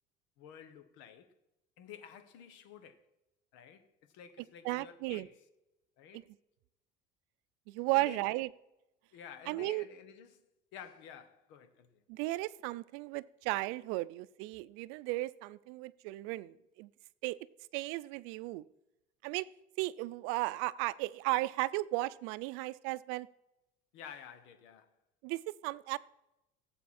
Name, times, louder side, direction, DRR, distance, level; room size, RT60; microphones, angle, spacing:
voice 1, 0.4-1.3 1.8-3.0 3.5-5.4 6.0-6.3 7.9-8.4 9.1-10.4 10.7-12.0 23.9-24.9, left 8 dB, 70° left, 1.3 m, -51 dB
voice 2, 4.6-5.3 6.1-6.2 7.7-8.5 9.5-9.8 12.1-16.9 17.2-17.4 17.7-18.6 19.2-19.5 19.8-23.3 25.2-26.0, right 20 dB, 85° right, 0.5 m, -35 dB
17.0 x 7.9 x 4.3 m
cardioid pair, 165°, 20 cm